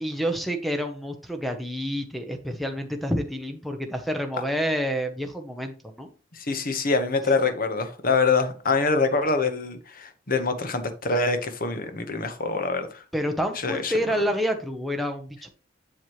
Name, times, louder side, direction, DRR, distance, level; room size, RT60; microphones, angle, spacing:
voice 1, 0.0-6.1 13.1-15.5, equal, ahead, 0.8 m, -28 dB
voice 2, 6.3-13.0 13.6-13.9, left 3 dB, 45° left, 1.1 m, -25 dB
7.7 x 7.2 x 3.1 m
head